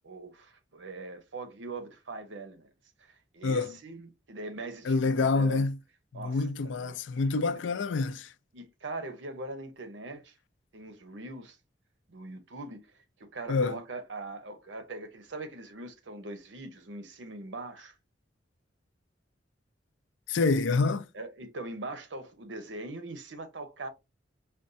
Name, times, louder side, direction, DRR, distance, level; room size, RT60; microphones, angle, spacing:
voice 1, 0.0-2.7 3.0-5.7 6.1-7.0 8.5-10.3 10.7-11.6 12.1-12.9 13.2-17.9 21.1-23.9, right 2 dB, 80° right, 0.8 m, -41 dB
voice 2, 3.4-3.7 4.8-5.8 6.1-8.3 13.5-13.8 20.3-21.1, left 3 dB, 85° left, 0.4 m, -27 dB
5.1 x 2.3 x 2.6 m
head